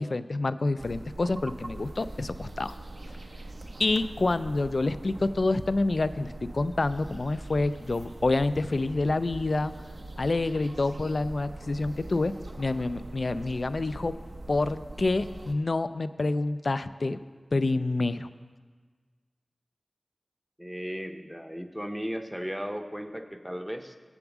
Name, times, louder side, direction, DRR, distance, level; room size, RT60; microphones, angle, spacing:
voice 1, 0.0-2.7 3.8-9.7 10.2-14.2 14.5-17.2 17.5-18.3, left 2 dB, 65° left, 14 dB, 0.3 m, -27 dB
sound 1, 0.8-15.5, right 2 dB, 65° right, 0.7 m, -42 dB
voice 2, 20.6-24.0, equal, ahead, 7 dB, 0.6 m, -36 dB
8.0 x 7.1 x 6.0 m, 1.5 s
wide cardioid pair, 60°, 0 cm